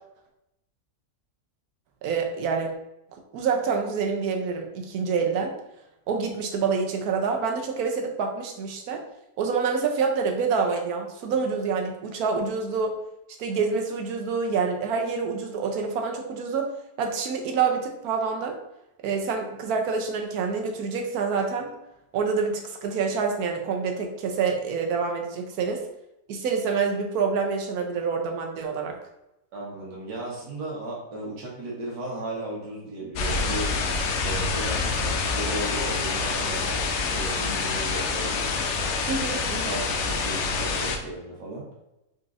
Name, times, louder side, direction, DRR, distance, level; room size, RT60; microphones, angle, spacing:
voice 1, 2.0-2.7 3.3-5.5 6.1-9.0 9.4-12.9 13.4-16.7 17.0-18.6 19.0-21.7 22.1-25.8 26.3-28.9 39.1-39.7, right 5 dB, 70° right, 3 dB, 1.1 m, -27 dB
voice 2, 29.5-33.8 34.2-36.8 37.1-38.5 39.6-41.7, right 2 dB, 85° right, -3 dB, 1.8 m, -35 dB
sound 1, 33.1-41.0, left 4 dB, 80° left, 0.6 m, -27 dB
4.3 x 3.9 x 2.5 m, 0.89 s
omnidirectional pair, 1.8 m